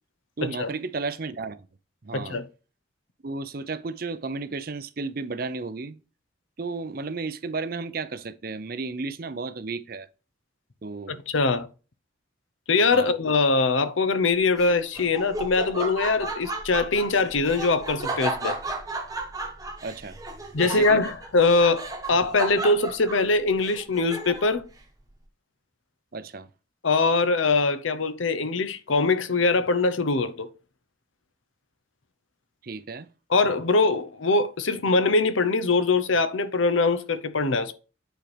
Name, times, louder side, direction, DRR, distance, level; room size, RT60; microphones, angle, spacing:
voice 1, 0.4-1.7 2.0-2.4 3.2-6.0 6.6-10.1 10.8-11.2 12.9-13.1 19.8-20.2 20.6-21.0 26.1-26.5 32.6-33.1, right 4 dB, 50° right, 0.6 m, -33 dB
voice 2, 2.1-2.4 11.1-11.7 12.7-18.6 20.5-24.7 26.8-30.5 33.3-37.7, left 3 dB, 85° left, 0.8 m, -22 dB
Laughter, 14.6-24.6, right 2 dB, 20° right, 1.1 m, -34 dB
9.1 x 4.4 x 3.3 m
head